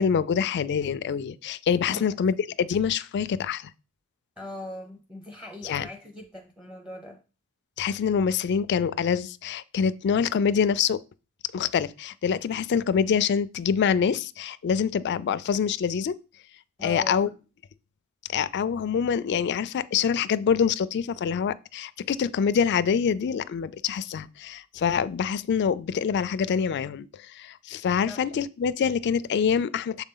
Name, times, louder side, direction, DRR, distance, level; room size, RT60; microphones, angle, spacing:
voice 1, 0.0-3.7 5.6-5.9 7.8-11.0 11.5-16.2 16.8-17.3 18.3-30.0, left 7 dB, 50° left, 0.3 m, -25 dB
voice 2, 1.9-2.2 4.4-7.2 16.8-17.2 28.1-28.2, left 1 dB, 5° right, 0.7 m, -40 dB
7.1 x 4.0 x 3.7 m
head